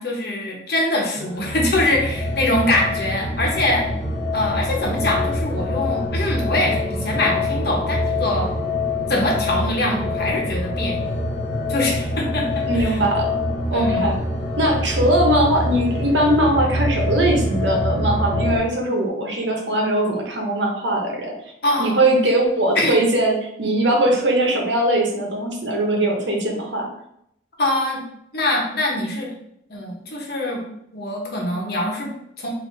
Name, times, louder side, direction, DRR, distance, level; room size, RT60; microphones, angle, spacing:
voice 1, 0.0-3.9 4.3-8.5 9.1-11.0 11.7-13.0 13.7-14.1 21.6-22.0 22.8-23.0 27.6-28.0 28.3-29.3 29.7-30.6 30.9-32.5, left 1 dB, 60° left, -1 dB, 1.1 m, -23 dB
sound 1, 1.2-18.6, left 2 dB, 35° left, 1.3 m, -25 dB
voice 2, 12.7-13.3 13.7-14.2 14.6-21.3 21.8-26.9, right 1 dB, 80° right, 1 dB, 1.0 m, -20 dB
3.7 x 2.8 x 4.0 m, 0.75 s
head